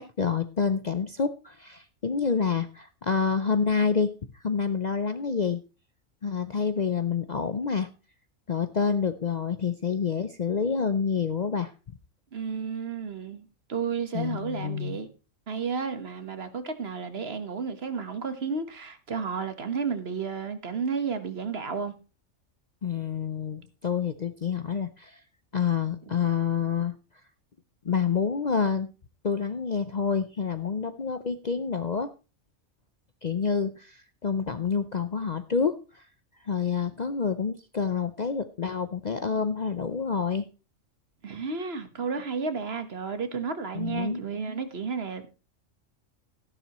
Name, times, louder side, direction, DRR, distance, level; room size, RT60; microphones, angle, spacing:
voice 1, 0.0-5.6 6.2-7.9 8.5-11.7 14.1-15.0 22.8-25.2 25.5-27.0 27.8-28.9 29.2-32.1 33.2-36.1 36.4-40.5 43.7-44.2, left 6 dB, 45° left, 0.6 m, -28 dB
voice 2, 12.3-15.1 15.5-21.9 41.2-45.3, right 5 dB, 50° right, 1.5 m, -32 dB
13.5 x 11.5 x 3.0 m
omnidirectional pair, 1.3 m